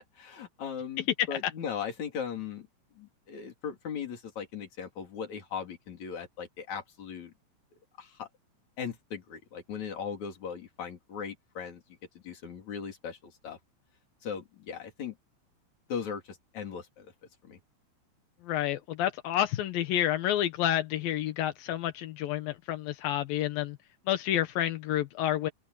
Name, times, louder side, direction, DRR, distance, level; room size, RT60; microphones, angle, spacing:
voice 1, 0.0-2.7 3.0-7.3 8.0-8.3 8.8-11.8 12.2-13.6 14.2-15.1 15.9-17.1 17.4-17.6, left 7 dB, 40° left, 3.9 m, -38 dB
voice 2, 18.5-23.8 24.1-25.5, left 12 dB, 75° left, 2.2 m, -29 dB
open air
omnidirectional pair, 5.6 m